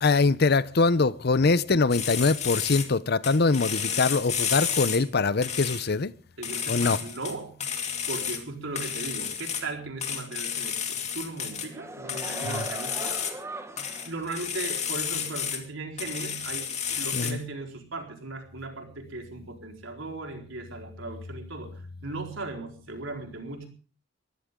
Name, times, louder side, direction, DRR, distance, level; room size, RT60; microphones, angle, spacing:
voice 1, 0.0-6.1 6.7-7.0 12.4-12.6 17.1-17.4, left 3 dB, 55° left, 0.7 m, -23 dB
sound 1, 1.9-2.9 3.2-5.0 5.4-5.9 6.4-7.3 7.6-8.4 8.7-9.6 10.0-11.7 12.1-13.3 13.8-15.6 16.0-17.3, left 7 dB, 35° left, 2.5 m, -31 dB
voice 2, 6.4-7.5 8.1-13.2 14.0-23.7, right 2 dB, 90° right, 4.3 m, -37 dB
sound 2, 11.5-14.2 14.6-14.7, right 2 dB, 15° right, 1.4 m, -39 dB
21.5 x 15.5 x 3.8 m
head